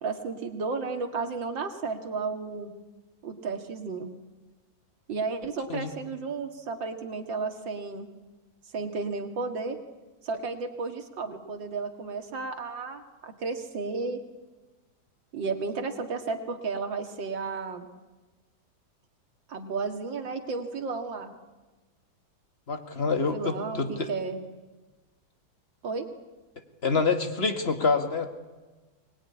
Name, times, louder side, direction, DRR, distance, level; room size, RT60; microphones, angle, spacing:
voice 1, 0.0-2.7 3.2-4.1 5.1-8.1 8.7-9.8 10.2-14.2 15.3-17.9 19.5-21.3 23.1-24.4 25.8-26.0, right 4 dB, 75° right, 5 dB, 2.7 m, -33 dB
voice 2, 22.7-24.1 26.8-28.3, left 4 dB, 35° left, 7 dB, 2.0 m, -26 dB
23.5 x 19.5 x 9.8 m, 1.2 s
omnidirectional pair, 2.1 m